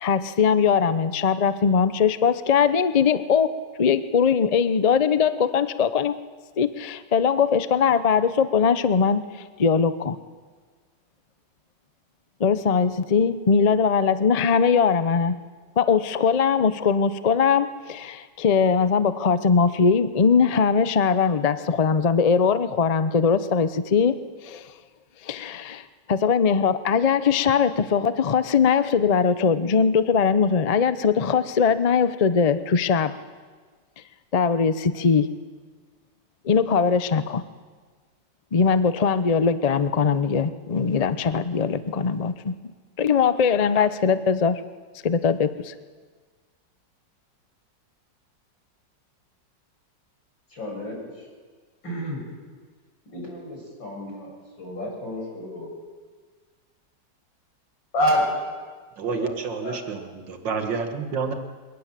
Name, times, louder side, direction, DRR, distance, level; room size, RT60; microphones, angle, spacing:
voice 1, 0.0-3.5 3.8-6.2 6.6-9.2 9.6-10.2 12.4-15.4 15.8-24.7 25.2-33.1 34.3-35.3 36.4-37.4 38.5-42.6 43.0-44.6 45.0-45.7, left 6 dB, 60° left, 12 dB, 0.4 m, -21 dB
voice 2, 50.5-51.3 51.8-52.2 53.1-55.7 57.9-58.2 58.5-58.6 59.1-59.3 59.6-59.8, equal, 85° left, -1 dB, 7.7 m, -29 dB
voice 3, 59.0-61.3, right 5 dB, 75° right, 6 dB, 2.4 m, -29 dB
23.0 x 18.5 x 7.6 m, 1.5 s
omnidirectional pair, 2.0 m